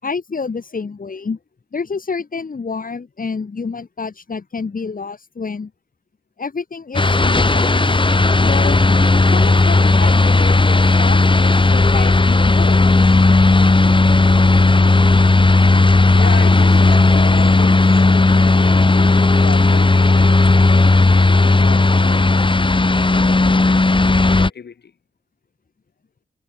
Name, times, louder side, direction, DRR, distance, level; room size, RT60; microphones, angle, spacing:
voice 1, 0.0-1.4 1.7-5.7 6.4-8.0 8.4-8.8 9.2-12.9, left 4 dB, 55° left, 5.0 m, -28 dB
sound 1, 6.9-24.5, left 3 dB, 30° left, 2.6 m, -13 dB
voice 2, 16.2-24.9, left 6 dB, 75° left, 7.0 m, -34 dB
cardioid pair, 65°, 17 cm